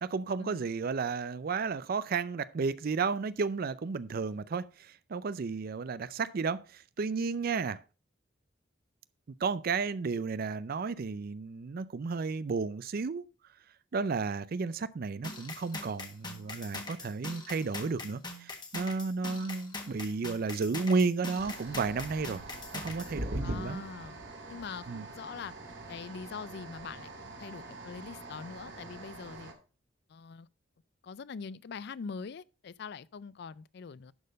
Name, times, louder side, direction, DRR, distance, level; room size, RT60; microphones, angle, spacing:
voice 1, 0.0-7.8 9.4-13.2 13.9-22.4 22.7-23.8 24.9-25.0, right 4 dB, 50° right, 0.4 m, -33 dB
sound 1, 15.2-23.1, left 3 dB, 25° left, 1.4 m, -42 dB
sound 2, 21.4-29.5, right 1 dB, 75° right, 2.4 m, -43 dB
voice 2, 23.4-24.2 24.5-25.5 25.9-29.5 30.1-30.5 31.0-34.1, left 5 dB, 60° left, 0.4 m, -43 dB
11.5 x 4.4 x 5.2 m
head